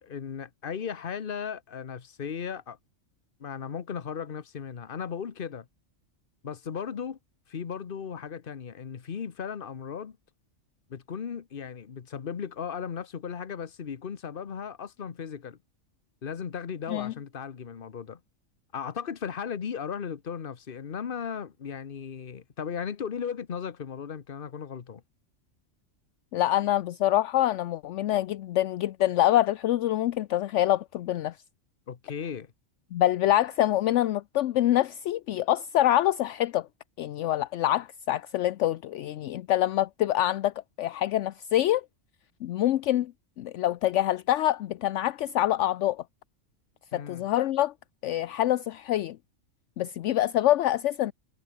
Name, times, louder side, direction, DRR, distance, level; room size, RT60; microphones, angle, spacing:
voice 1, 0.0-2.8 3.4-5.7 6.4-7.2 7.5-10.2 10.9-15.6 16.2-18.2 18.7-25.0 31.9-32.5 46.9-47.2, left 7 dB, 45° left, 1.2 m, -36 dB
voice 2, 26.3-31.4 32.9-36.7 37.0-41.9 42.4-43.1 43.4-46.0 46.9-47.7 48.0-49.2 49.8-51.1, left 13 dB, 70° left, 0.9 m, -25 dB
omnidirectional pair, 1.3 m